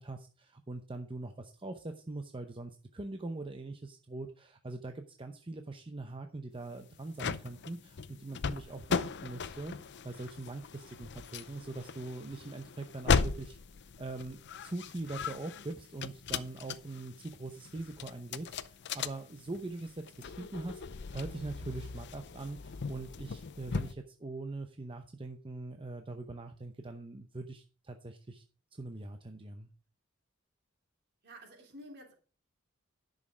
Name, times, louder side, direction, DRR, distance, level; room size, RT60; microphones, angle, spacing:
voice 1, 0.0-13.6 14.0-28.4 28.7-29.7, right 2 dB, 25° right, 5 dB, 0.7 m, -42 dB
sound 1, 6.8-23.9, left 5 dB, 55° left, 0.6 m, -37 dB
voice 2, 31.2-32.1, equal, 55° right, 2 dB, 3.3 m, -50 dB
10.5 x 6.5 x 5.0 m, 0.38 s
head